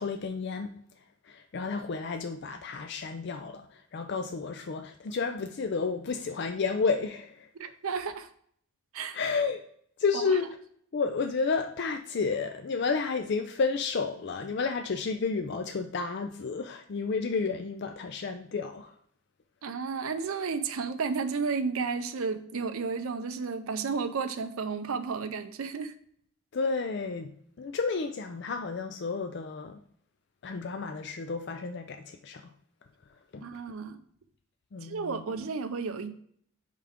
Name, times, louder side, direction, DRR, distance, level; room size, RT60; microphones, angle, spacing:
voice 1, 0.0-7.7 9.1-9.6 10.0-10.5 10.9-18.9 26.5-27.3 27.6-29.8 30.4-32.4 33.3-33.5 34.7-35.4, left 4 dB, 50° left, 0.4 m, -31 dB
voice 2, 7.6-8.3 8.9-9.2 19.6-25.9 33.4-34.0 34.8-36.2, right 5 dB, 70° right, 0.5 m, -32 dB
5.7 x 4.8 x 3.5 m
head